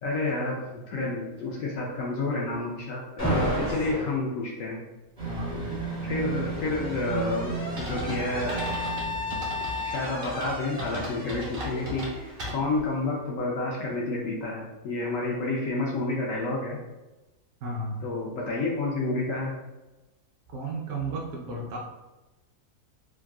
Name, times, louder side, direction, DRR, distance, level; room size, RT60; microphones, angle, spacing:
voice 1, 0.0-4.8 6.0-8.7 9.8-16.8 18.0-19.6, left 2 dB, 70° left, -3 dB, 0.8 m, -30 dB
Alarm, 3.2-4.2 5.4-13.1, left 1 dB, 10° left, 1.0 m, -34 dB
sound 1, 5.2-10.2 10.5-10.6, right 4 dB, 30° right, 0.7 m, -34 dB
voice 2, 5.2-5.9 17.6-18.0 20.5-21.8, right 2 dB, 75° right, -2 dB, 0.7 m, -34 dB
sound 2, 7.8-12.8, equal, 55° right, 1.2 m, -37 dB
3.5 x 2.3 x 2.2 m, 1.1 s
omnidirectional pair, 1.8 m